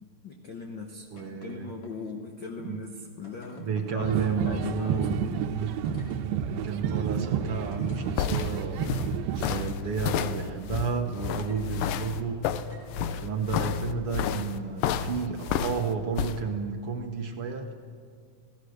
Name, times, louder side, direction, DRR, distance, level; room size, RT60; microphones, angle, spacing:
voice 1, 0.0-1.1 1.4-5.1, left 4 dB, 60° left, 3 dB, 1.2 m, -40 dB
voice 2, 1.1-1.7 2.6-2.8 3.6-5.8 6.4-12.5 13.0-17.7, right 5 dB, 60° right, 5 dB, 1.5 m, -32 dB
sound 1, 1.2-1.6 1.8-2.3 3.2-3.9 5.0-5.1 5.7-6.2 6.9-7.0 7.7-8.6 9.5-10.1 11.3-11.6 12.6-13.0 14.1-14.3, left 2 dB, 40° left, 3.8 m, -53 dB
sound 2, 4.0-9.7, right 7 dB, 85° right, 2.7 m, -30 dB
sound 3, 7.7-16.4, left 9 dB, 75° left, 2.4 m, -31 dB
28.5 x 17.5 x 6.6 m, 2.1 s
omnidirectional pair, 4.1 m